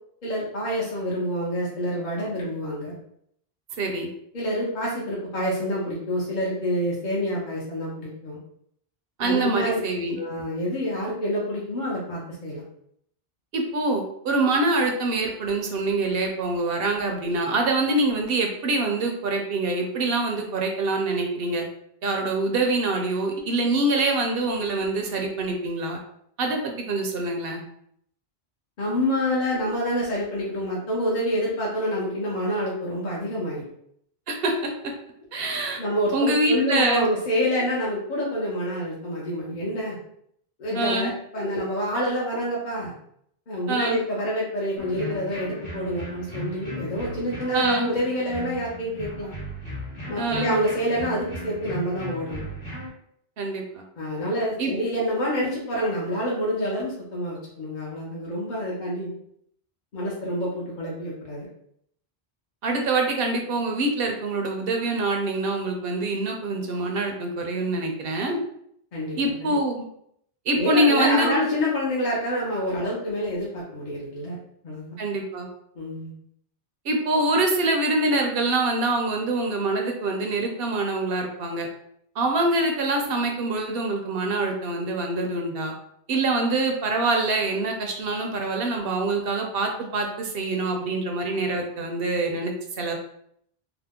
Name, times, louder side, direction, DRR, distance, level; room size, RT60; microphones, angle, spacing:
voice 1, 0.2-2.9 4.3-8.4 9.2-9.8 10.2-12.6 28.8-33.6 35.8-40.0 40.6-42.9 43.5-49.3 50.1-52.4 54.0-59.1 59.9-61.5 68.9-69.2 69.4-69.5 70.5-74.4 74.6-75.0 75.8-76.1, equal, 50° left, -5 dB, 0.8 m, -27 dB
voice 2, 3.8-4.1 9.2-10.2 13.5-21.6 22.0-26.0 26.4-27.6 34.3-34.9 35.3-35.8 36.1-37.1 40.7-41.1 43.7-44.0 47.5-47.9 50.2-50.5 53.4-53.8 54.6-54.7 62.6-68.4 69.2-69.7 70.5-71.3 75.0-75.5 76.8-81.7 82.2-85.7 86.1-92.9, right 2 dB, 70° right, 2 dB, 0.8 m, -25 dB
sound 1, 44.8-52.9, equal, 30° left, 1.0 m, -36 dB
2.8 x 2.0 x 3.5 m, 0.70 s
omnidirectional pair, 1.0 m